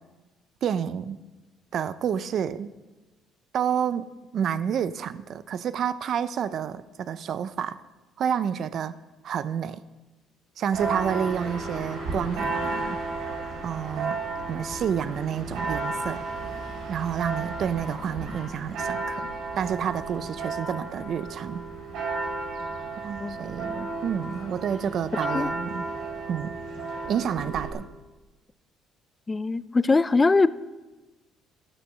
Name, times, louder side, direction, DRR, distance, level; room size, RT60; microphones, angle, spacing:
voice 1, 0.6-1.2 1.7-2.7 3.5-7.8 8.2-9.0 9.2-9.8 10.6-13.0 13.6-14.2 14.5-16.2 16.9-19.3 19.6-21.6 23.0-25.9 26.3-26.5 27.0-27.9, right 8 dB, 55° right, 0.6 m, -29 dB
Church bell, 10.7-27.7, right 3 dB, 75° right, 6.0 m, -33 dB
voice 2, 29.3-30.5, left 3 dB, 20° left, 0.5 m, -22 dB
13.5 x 11.0 x 6.6 m
cardioid pair, 110°, 0 cm